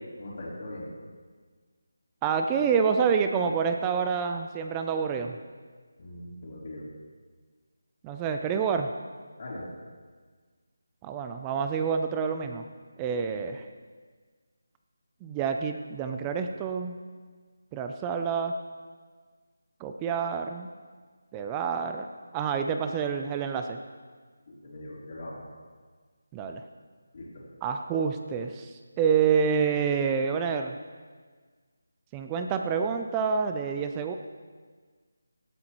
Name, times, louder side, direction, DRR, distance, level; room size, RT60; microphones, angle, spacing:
voice 1, 0.2-0.9 6.0-6.8 9.4-9.6 24.6-25.4 27.1-27.4, left 1 dB, 40° left, -7 dB, 3.4 m, -40 dB
voice 2, 2.2-5.4 8.0-8.9 11.0-12.7 13.0-13.6 15.2-17.0 17.7-18.5 19.8-20.7 21.3-22.1 22.3-23.8 26.3-26.6 27.6-30.8 32.1-34.2, right 6 dB, 10° right, 6 dB, 0.4 m, -28 dB
17.5 x 12.5 x 3.0 m, 1.5 s
figure-of-eight pair, 175°, 0 cm